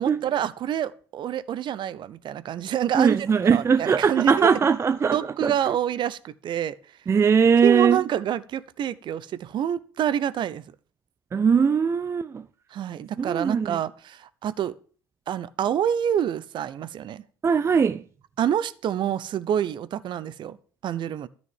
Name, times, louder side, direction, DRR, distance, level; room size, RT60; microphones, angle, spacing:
voice 1, 0.0-3.2 3.5-4.5 5.1-6.8 7.6-10.6 12.7-14.8 15.3-17.2 18.4-20.6 20.8-21.3, right 10 dB, 40° right, 0.8 m, -27 dB
voice 2, 2.9-5.7 7.1-8.0 11.3-12.4 13.2-13.8 17.4-18.0, right 6 dB, 20° right, 0.5 m, -21 dB
13.5 x 6.3 x 7.3 m
figure-of-eight pair, 65°, 12 cm